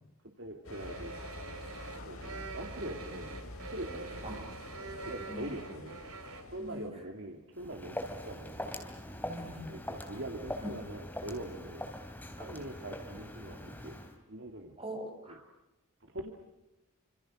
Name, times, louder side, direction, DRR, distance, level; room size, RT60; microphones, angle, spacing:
voice 1, 0.2-1.2 2.0-4.5 5.0-6.0 6.4-8.7 9.6-11.9 12.4-14.0 14.3-14.8 16.0-16.3, right 1 dB, 60° right, 3 dB, 2.6 m, -43 dB
sound 1, 0.6-6.9, left 2 dB, 85° left, 3.9 m, -46 dB
sound 2, 0.7-6.4, right 4 dB, 90° right, 3.1 m, -46 dB
voice 2, 6.6-7.0 9.2-9.7 10.2-10.3 10.6-10.7 14.8-15.4, equal, 25° right, 2 dB, 7.1 m, -42 dB
Walk footsteps, 7.5-14.1, left 1 dB, 10° left, 3.4 m, -42 dB
28.5 x 27.0 x 6.4 m, 0.96 s
head